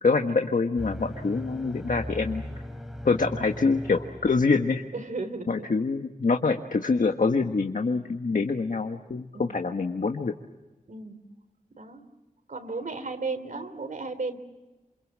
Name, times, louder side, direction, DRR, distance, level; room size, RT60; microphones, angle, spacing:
voice 1, 0.0-2.4 3.0-4.8 5.5-10.3, left 4 dB, 75° left, 4 dB, 1.5 m, -25 dB
sound 1, 0.8-4.8, equal, ahead, 3.8 m, -38 dB
voice 2, 4.9-5.7 9.3-9.6 10.9-11.2 11.8-12.0 12.5-14.4, right 3 dB, 80° right, 7 dB, 3.4 m, -34 dB
28.5 x 26.0 x 7.6 m, 1.1 s
wide cardioid pair, 80°, 14 cm